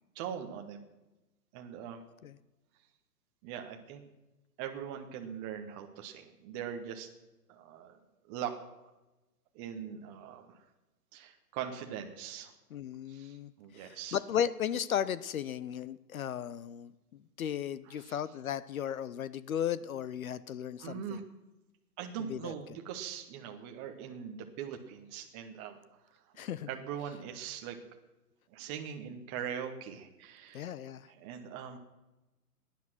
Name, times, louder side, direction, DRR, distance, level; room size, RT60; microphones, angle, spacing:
voice 1, 0.1-0.8 1.5-2.0 3.4-4.0 4.6-7.1 7.5-7.9 8.3-8.5 9.5-10.6 11.1-12.5 13.1-14.2 17.9-18.2 20.8-21.2 22.0-25.8 26.7-27.8 28.5-30.6 31.1-31.8, right 8 dB, 20° right, 4 dB, 0.7 m, -41 dB
voice 2, 12.7-16.9 17.4-21.2 22.2-22.5 26.4-26.7 30.5-31.1, left 9 dB, 60° left, 17 dB, 0.7 m, -35 dB
16.5 x 10.0 x 6.0 m, 1.0 s
hypercardioid pair, 130°, 48 cm